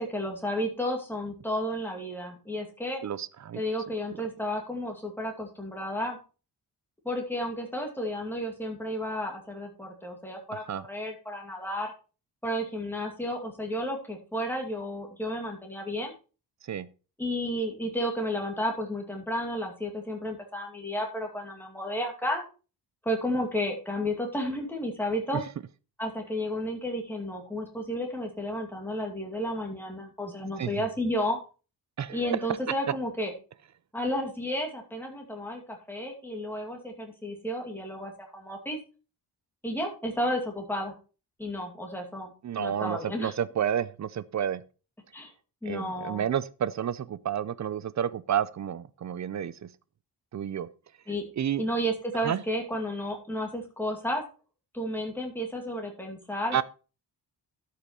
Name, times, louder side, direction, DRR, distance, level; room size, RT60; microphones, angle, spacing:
voice 1, 0.0-3.0 3.5-6.2 7.0-11.9 12.4-16.1 17.2-22.4 23.0-25.4 26.0-31.4 32.1-33.3 33.9-38.8 39.6-40.9 41.4-42.3 42.6-43.3 45.1-45.3 45.6-46.2 51.1-51.2 51.6-54.2 54.7-56.6, equal, 5° left, 2.4 m, -32 dB
voice 2, 3.0-3.6 10.5-10.8 16.7-16.9 25.3-25.4 30.6-30.7 32.0-32.4 42.4-44.6 45.7-49.7 50.3-50.7 51.4-51.6 52.2-52.4 56.5-56.6, right 9 dB, 45° right, 0.5 m, -30 dB
12.5 x 5.7 x 4.4 m
wide cardioid pair, 170°, 41 cm